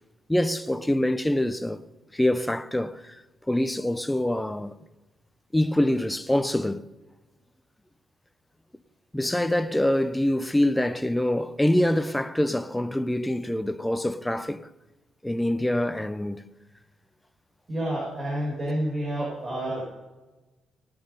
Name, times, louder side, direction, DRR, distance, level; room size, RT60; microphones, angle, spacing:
voice 1, 0.3-1.8 2.1-3.2 3.5-4.7 5.5-6.8 9.1-14.7 15.2-16.4, left 1 dB, 5° left, 0.7 m, -25 dB
voice 2, 17.7-19.9, right 1 dB, 30° right, 5.6 m, -29 dB
19.0 x 7.7 x 5.5 m
cardioid pair, 90°, 0 cm